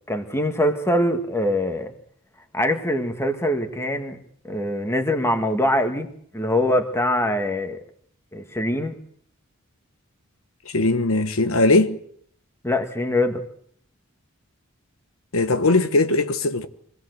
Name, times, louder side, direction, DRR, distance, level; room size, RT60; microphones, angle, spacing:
voice 1, 0.1-1.9 2.5-4.2 4.4-6.1 6.3-7.8 8.3-8.9 12.6-13.4, left 1 dB, 15° left, 1.8 m, -23 dB
voice 2, 10.7-12.0 15.3-16.7, left 2 dB, 75° left, 1.3 m, -19 dB
24.5 x 18.0 x 8.0 m
head